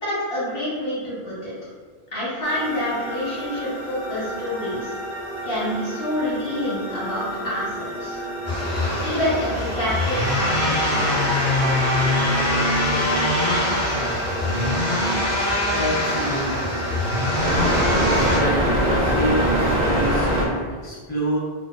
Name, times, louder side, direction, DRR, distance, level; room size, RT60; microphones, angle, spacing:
voice 1, 0.0-1.5 2.1-4.9 5.4-8.2 9.0-11.2, left 1 dB, 65° left, -9 dB, 1.6 m, -27 dB
sound 1, 2.4-20.5, right 1 dB, 45° right, 0.9 m, -27 dB
sound 2, 8.4-18.4, left 1 dB, 20° right, 1.2 m, -23 dB
voice 2, 15.7-16.7 17.9-21.4, equal, 25° left, -9 dB, 0.9 m, -28 dB
4.3 x 2.5 x 2.5 m, 1.5 s
omnidirectional pair, 1.0 m